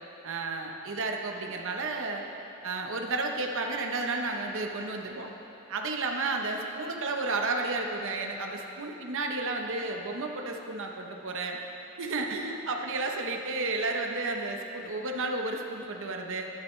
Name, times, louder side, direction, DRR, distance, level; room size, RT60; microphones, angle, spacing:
voice 1, 0.2-2.2 2.6-5.3 5.7-11.6 12.0-16.5, right 3 dB, 60° right, 2 dB, 0.9 m, -32 dB
11.5 x 11.0 x 3.2 m, 2.9 s
head